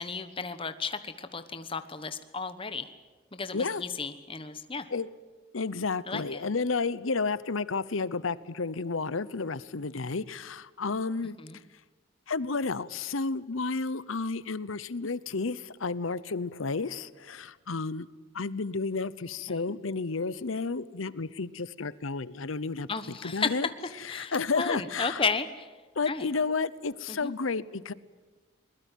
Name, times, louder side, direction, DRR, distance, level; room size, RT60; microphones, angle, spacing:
voice 1, 0.0-2.9 3.3-4.9 6.1-6.4 11.4-11.6 19.5-19.6 22.9-23.5 24.1-25.7 26.1-26.3 27.1-27.3, left 4 dB, 25° left, 10 dB, 1.2 m, -33 dB
voice 2, 5.5-11.4 12.3-18.1 18.3-22.9 23.2-23.7 24.0-25.2 26.0-27.9, left 4 dB, 85° left, 18 dB, 0.9 m, -31 dB
22.5 x 21.0 x 9.2 m, 1.3 s
head